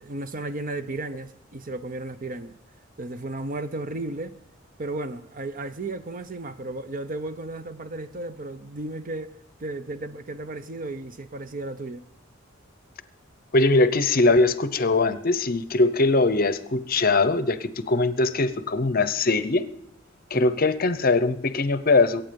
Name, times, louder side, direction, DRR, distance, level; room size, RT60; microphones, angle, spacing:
voice 1, 0.0-2.6 3.0-4.3 4.8-12.0 20.3-20.5, right 2 dB, 45° right, 0.7 m, -34 dB
voice 2, 13.5-19.7 20.3-22.2, left 3 dB, 50° left, 0.8 m, -21 dB
22.0 x 9.1 x 5.3 m
head